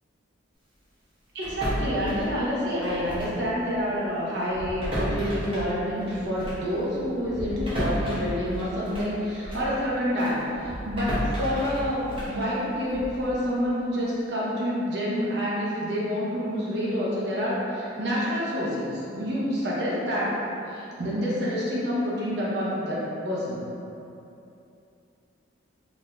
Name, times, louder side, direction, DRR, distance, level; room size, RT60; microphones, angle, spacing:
voice 1, 1.3-20.4 20.7-23.7, equal, 60° right, -6 dB, 0.7 m, -28 dB
sound 1, 1.4-3.5 3.7-3.9 4.5-9.8 10.2-13.3, equal, 25° right, 0.7 m, -33 dB
4.0 x 2.6 x 2.2 m, 2.7 s
head